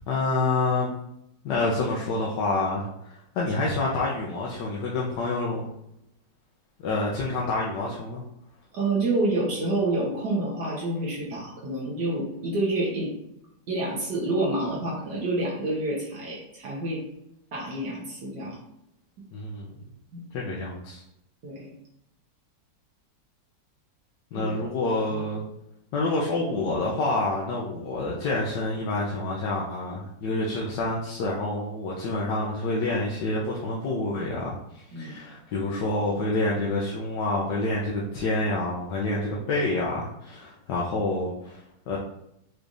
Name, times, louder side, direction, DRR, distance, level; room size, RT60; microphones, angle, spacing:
voice 1, 0.1-0.9 1.4-5.7 6.8-8.2 19.3-19.8 20.3-21.0 24.3-25.4 25.9-42.0, left 2 dB, 70° left, -4 dB, 1.3 m, -28 dB
voice 2, 8.7-13.1 13.7-17.0 17.5-18.6 20.1-20.2 21.4-21.7 24.3-24.6 34.9-35.2, right 2 dB, 65° right, -4 dB, 1.5 m, -28 dB
6.2 x 3.3 x 2.6 m, 0.81 s
omnidirectional pair, 2.1 m